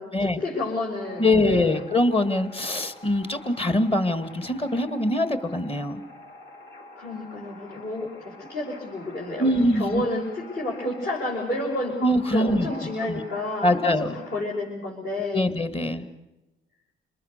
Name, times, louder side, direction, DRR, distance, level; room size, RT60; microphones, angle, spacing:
voice 1, 0.0-1.7 6.9-12.0 12.3-15.5, left 2 dB, 55° left, -4 dB, 6.1 m, -30 dB
sound 1, 1.0-14.5, left 2 dB, 70° left, 2.6 m, -46 dB
voice 2, 1.2-6.0 9.4-10.0 12.0-13.2 13.6-14.1 15.3-16.0, left 1 dB, 30° left, 12 dB, 2.1 m, -23 dB
28.0 x 20.5 x 6.7 m, 1.0 s
cardioid pair, 90°, 20 cm